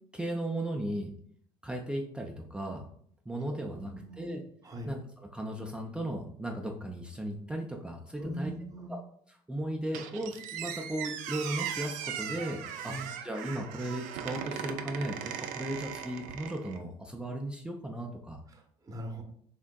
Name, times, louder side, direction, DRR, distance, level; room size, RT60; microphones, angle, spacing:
voice 1, 0.1-1.1 1.6-2.9 3.3-4.4 4.9-8.5 8.9-9.0 9.3-18.4, right 1 dB, 5° right, 0 dB, 0.4 m, -36 dB
voice 2, 3.5-4.3 4.6-4.9 8.2-8.9 12.8-13.1 18.5-19.2, equal, 25° right, 3 dB, 0.8 m, -41 dB
Squeak, 9.9-16.8, right 9 dB, 75° right, 0.4 m, -39 dB
3.5 x 2.5 x 2.2 m, 0.63 s
supercardioid pair, 70°, 13 cm